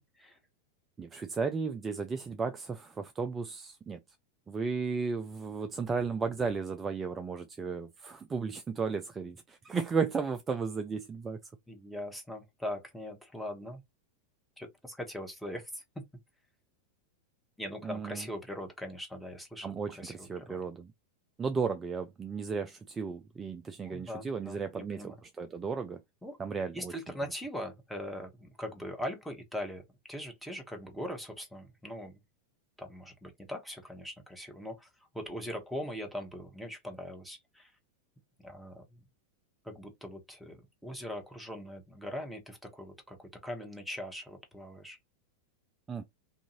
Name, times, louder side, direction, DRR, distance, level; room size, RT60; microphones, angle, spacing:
voice 1, 1.0-4.0 4.5-11.4 17.8-18.3 19.6-20.9 21.4-26.0 26.4-26.9 45.9-46.0, right 5 dB, 20° right, 0.3 m, -34 dB
voice 2, 11.7-13.8 14.6-15.8 17.6-20.6 23.8-25.1 26.2-26.4 26.7-29.8 30.1-32.2 32.8-34.9 35.1-37.7 38.4-39.0 39.6-45.0, equal, ahead, 0.9 m, -41 dB
2.7 x 2.5 x 2.8 m
figure-of-eight pair, 90°, 0 cm